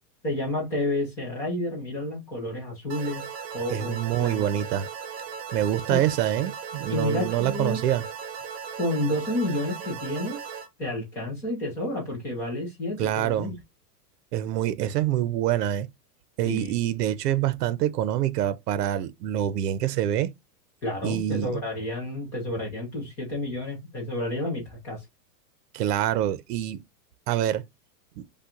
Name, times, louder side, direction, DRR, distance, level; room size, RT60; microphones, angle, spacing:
voice 1, 0.2-3.2 3.5-4.4 5.9-6.0 6.9-7.8 8.8-10.4 10.8-13.5 16.4-16.8 20.8-25.0, left 1 dB, 5° left, 0.4 m, -30 dB
sound 1, 2.9-10.7, right 6 dB, 40° right, 1.0 m, -37 dB
voice 2, 3.7-4.9 5.5-8.0 13.0-13.5 14.3-15.9 16.4-20.3 21.0-21.6 25.7-26.8 27.3-27.6 28.2-28.3, right 12 dB, 80° right, 0.7 m, -26 dB
5.5 x 2.2 x 3.7 m
supercardioid pair, 165°, 47 cm